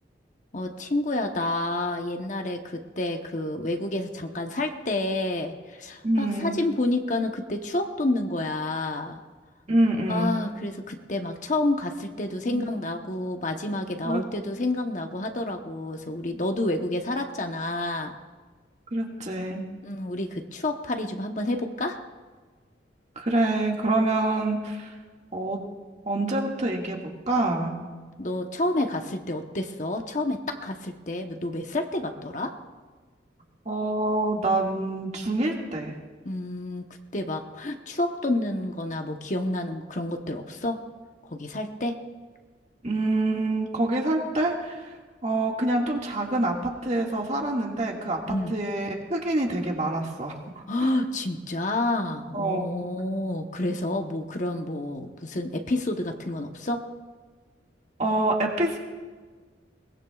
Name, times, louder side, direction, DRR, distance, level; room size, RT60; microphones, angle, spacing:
voice 1, 0.5-9.2 10.1-18.2 19.8-22.0 28.2-32.5 36.2-36.8 37.1-40.8 41.3-42.0 48.3-48.5 50.7-56.8, left 2 dB, 45° left, 4 dB, 1.0 m, -29 dB
voice 2, 6.0-6.6 9.7-10.4 12.5-12.7 14.0-14.2 18.9-19.7 23.2-24.9 25.3-25.6 26.1-27.8 33.7-36.0 42.8-44.9 45.2-48.2 48.5-50.9 52.3-52.9 58.0-58.8, right 2 dB, 40° right, -1 dB, 2.0 m, -26 dB
22.0 x 20.0 x 2.4 m, 1.4 s
head